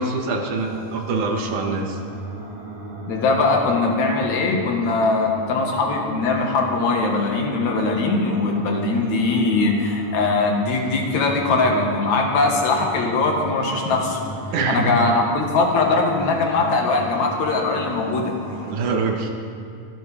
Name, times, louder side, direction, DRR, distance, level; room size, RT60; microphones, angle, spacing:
voice 1, 0.0-2.0 14.5-15.2 18.6-19.3, right 3 dB, 80° right, 2 dB, 2.9 m, -24 dB
sound 1, 0.6-18.8, right 2 dB, 45° right, 2.5 m, -35 dB
voice 2, 3.1-14.2 14.7-18.7, left 3 dB, 75° left, 1 dB, 2.8 m, -21 dB
24.5 x 12.0 x 3.5 m, 2.5 s
omnidirectional pair, 3.4 m